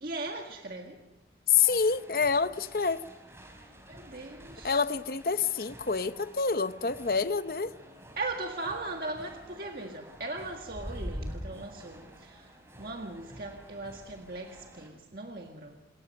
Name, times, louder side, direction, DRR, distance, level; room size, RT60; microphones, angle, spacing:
voice 1, 0.0-1.0 3.9-4.8 8.2-15.8, right 2 dB, 55° right, 1.8 m, -39 dB
voice 2, 1.5-3.0 4.6-7.7, left 5 dB, 55° left, 0.8 m, -27 dB
sound 1, 1.5-14.9, equal, 15° right, 4.3 m, -47 dB
27.5 x 21.5 x 6.5 m
head